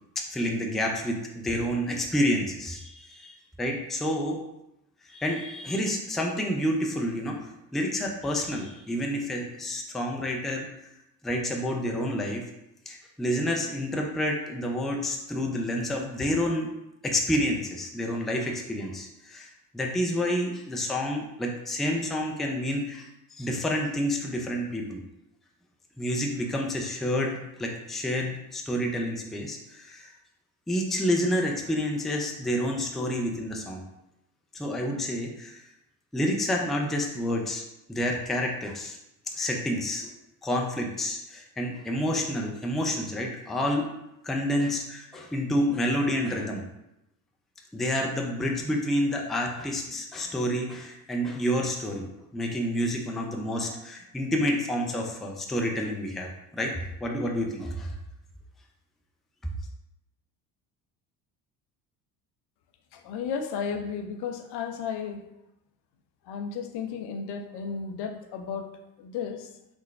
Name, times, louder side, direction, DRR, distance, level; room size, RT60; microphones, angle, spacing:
voice 1, 0.2-4.4 5.1-7.4 7.7-10.6 11.2-12.4 12.9-16.7 17.0-25.0 26.0-30.1 30.7-33.8 34.5-35.6 36.1-37.6 37.9-39.0 39.4-40.1 40.4-43.9 44.2-46.7 47.7-56.7 57.0-57.9, equal, ahead, 0 dB, 0.4 m, -29 dB
voice 2, 62.9-65.3 66.3-68.7 69.0-69.5, left 6 dB, 55° left, 6 dB, 0.6 m, -33 dB
3.8 x 2.1 x 3.3 m, 0.86 s
hypercardioid pair, 60°, 49 cm